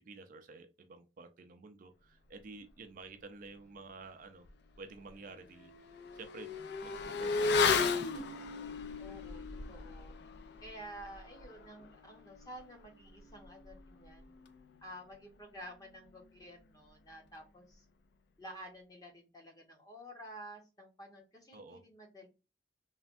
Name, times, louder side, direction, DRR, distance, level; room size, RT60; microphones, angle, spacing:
voice 1, 0.0-4.5 4.8-6.5 6.8-8.2 21.5-21.8, right 3 dB, 50° right, 8 dB, 0.4 m, -51 dB
Motorcycle / Accelerating revving vroom, 4.4-4.5 4.9-14.9 15.2-15.3, left 4 dB, 60° left, 0.4 m, -36 dB
voice 2, 9.0-9.4 9.7-10.1 10.6-14.3 14.8-17.9 18.4-22.3, equal, 20° left, 1 dB, 0.8 m, -51 dB
3.3 x 2.1 x 2.5 m, 0.28 s
head